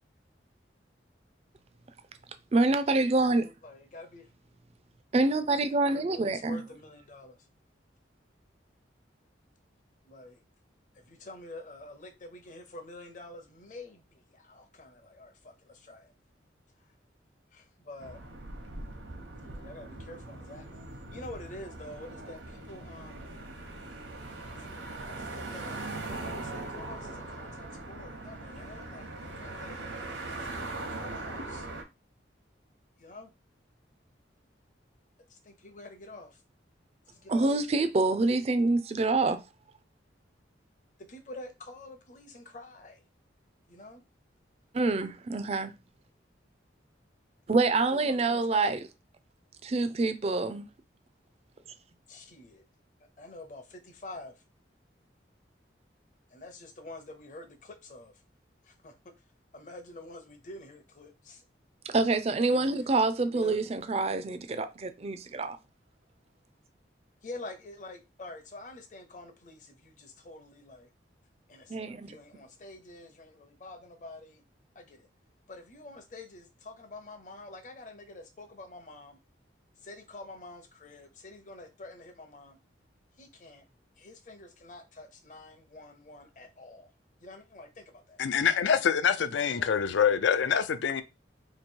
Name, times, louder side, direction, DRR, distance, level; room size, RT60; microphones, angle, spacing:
voice 1, 2.5-3.5 5.1-6.6 37.3-39.4 44.7-45.7 47.5-48.8 49.6-50.7 61.9-65.6 71.7-72.2, right 3 dB, 35° right, 0.4 m, -26 dB
voice 2, 3.6-4.3 5.9-7.4 10.0-10.4 10.9-16.1 17.5-18.2 19.4-20.9 21.1-23.3 25.0-25.8 26.1-29.8 30.3-31.7 33.0-33.3 35.3-36.4 37.1-37.5 41.0-43.0 43.7-44.0 47.7-48.8 52.1-52.6 53.2-54.4 56.3-58.1 58.6-59.0 59.5-61.4 63.3-63.6 67.2-70.9 71.5-74.4 74.7-75.1 75.5-79.2 79.8-82.6 83.2-83.6 84.0-86.9 87.2-88.2 89.3-89.7, left 2 dB, 40° left, 0.7 m, -47 dB
sound 1, 18.0-31.8, right 2 dB, 85° right, 1.0 m, -40 dB
voice 3, 88.2-91.0, left 7 dB, 75° left, 0.4 m, -25 dB
3.0 x 2.7 x 4.4 m
head